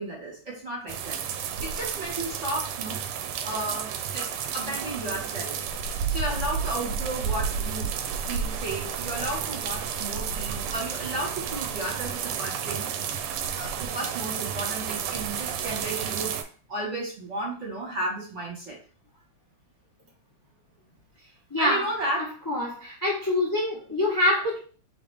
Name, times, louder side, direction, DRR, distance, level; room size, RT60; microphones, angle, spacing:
voice 1, 0.0-3.0 3.4-5.6 6.1-7.9 8.3-12.9 13.5-16.4 16.7-18.8 21.6-22.3, right 1 dB, 40° right, -4 dB, 1.4 m, -33 dB
sound 1, 0.9-16.4, right 7 dB, 85° right, 1.5 m, -31 dB
voice 2, 21.5-21.8 22.5-24.6, left 1 dB, 15° left, -5 dB, 0.7 m, -25 dB
4.0 x 3.4 x 3.3 m, 0.41 s
omnidirectional pair, 2.4 m